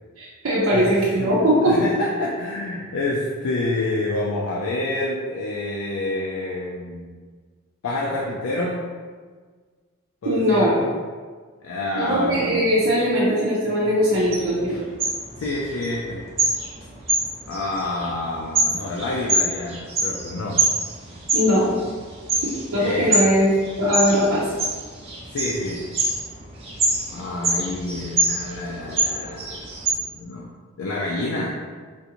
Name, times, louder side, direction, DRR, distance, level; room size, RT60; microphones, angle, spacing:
voice 1, 0.2-1.7 10.2-10.7 11.9-14.8 21.3-21.7 22.7-23.5 23.8-24.4, equal, 90° right, -8 dB, 0.7 m, -20 dB
voice 2, 0.7-1.3 1.6-7.2 7.8-8.9 10.2-10.9 11.6-12.4 14.7-14.8 15.4-16.2 17.5-20.7 22.7-23.2 25.3-26.0 27.1-30.5 30.8-31.5, left 2 dB, 80° left, -3 dB, 0.4 m, -28 dB
sound 1, 14.1-29.9, right 2 dB, 30° right, 0.6 m, -26 dB
3.6 x 2.5 x 2.9 m, 1.5 s
head